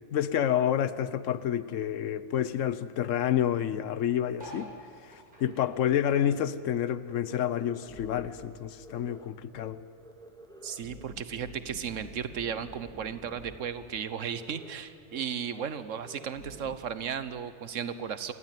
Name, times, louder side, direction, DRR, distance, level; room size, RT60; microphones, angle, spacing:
voice 1, 0.1-4.7 5.0-9.8, left 10 dB, 85° left, 15 dB, 1.1 m, -29 dB
sound 1, 4.3-7.1 7.4-9.0 9.4-9.5 9.7-9.8 10.0-10.4 11.2-11.3, right 1 dB, 40° right, 7.2 m, -50 dB
sound 2, 5.4-5.5 5.8-6.3 6.6-6.8 7.0-8.5 8.8-9.3 9.5-9.7 10.0-13.6 13.8-14.0 14.3-14.8 15.1-15.2 15.5-16.8, right 1 dB, 5° left, 2.1 m, -50 dB
voice 2, 10.6-18.3, right 7 dB, 90° right, 13 dB, 1.4 m, -35 dB
26.5 x 14.0 x 9.2 m, 2.4 s
omnidirectional pair, 1.3 m